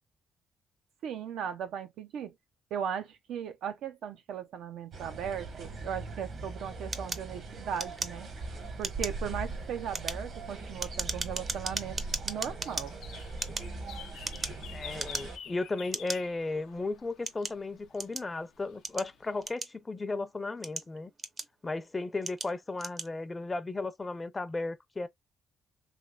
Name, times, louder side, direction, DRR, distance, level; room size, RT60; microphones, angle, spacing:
voice 1, 1.0-2.3 2.7-8.3 8.8-12.0 12.3-12.9, right 8 dB, 80° right, 0.5 m, -37 dB
sound 1, 4.9-15.4, right 3 dB, 65° right, 1.2 m, -41 dB
sound 2, 6.9-8.5 8.8-9.2 9.8-12.9 13.3-14.6 14.9-15.5 15.9-16.2 16.8-18.3 18.8-20.0 20.5-21.7 22.2-22.5 22.8-23.1, right 3 dB, 35° right, 0.6 m, -37 dB
Birdsong at Dawn Lucca, 7.7-19.5, left 9 dB, 85° left, 0.5 m, -52 dB
voice 2, 14.7-21.1 21.6-25.1, left 3 dB, 25° left, 0.5 m, -35 dB
3.3 x 2.9 x 2.4 m
cardioid pair, 90°, 0 cm